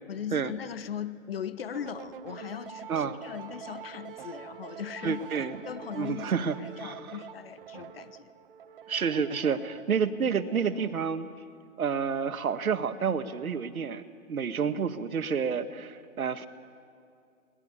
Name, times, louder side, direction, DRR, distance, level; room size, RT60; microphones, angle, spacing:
voice 1, 0.1-6.3 6.6-8.3, left 9 dB, 45° left, 15 dB, 1.1 m, -39 dB
sound 1, 1.7-11.1, right 8 dB, 40° right, 1.1 m, -46 dB
voice 2, 2.9-3.2 5.0-5.6 5.9-7.0 8.9-11.3 11.8-16.5, right 6 dB, 85° right, 10 dB, 1.7 m, -29 dB
22.0 x 20.0 x 9.8 m, 2.5 s
hypercardioid pair, 165°, 42 cm